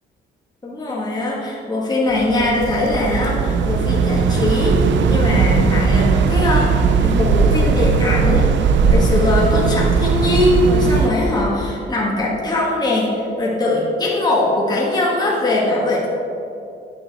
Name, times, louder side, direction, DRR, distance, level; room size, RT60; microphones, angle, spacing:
voice 1, 0.6-4.8 5.1-8.5 8.9-16.1, left 2 dB, 20° left, -6 dB, 1.7 m, -20 dB
sound 1, 2.1-11.1, right 5 dB, 70° right, 0.6 m, -17 dB
10.0 x 5.6 x 4.2 m, 2.6 s
cardioid pair, 90°, 20 cm